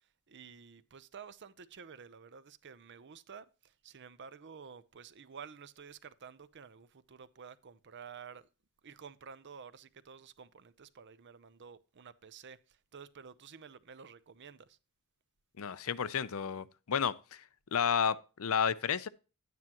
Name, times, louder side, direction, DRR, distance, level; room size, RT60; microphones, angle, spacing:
voice 1, 0.3-8.5 8.8-14.8, right 6 dB, 55° right, 0.7 m, -51 dB
voice 2, 15.6-17.4 17.7-19.1, left 7 dB, 65° left, 0.6 m, -32 dB
11.0 x 9.5 x 2.9 m
head